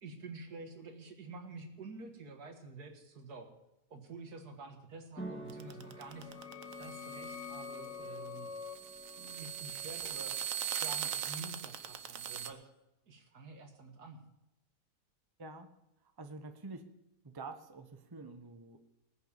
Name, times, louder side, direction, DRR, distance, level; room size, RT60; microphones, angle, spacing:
voice 1, 0.0-3.5 3.9-8.5 9.2-10.4 10.7-12.7 13.1-14.2, right 3 dB, 80° right, 5 dB, 2.2 m, -49 dB
sound 1, 5.2-12.5, right 1 dB, 5° left, 1.7 m, -52 dB
sound 2, 5.5-12.5, right 10 dB, 60° right, 1.2 m, -40 dB
sound 3, 5.8-11.2, left 6 dB, 50° left, 1.2 m, -48 dB
voice 2, 15.4-15.7 16.2-16.8 17.2-18.8, right 3 dB, 20° right, 8 dB, 0.8 m, -47 dB
20.0 x 6.9 x 7.1 m, 0.91 s
omnidirectional pair, 1.7 m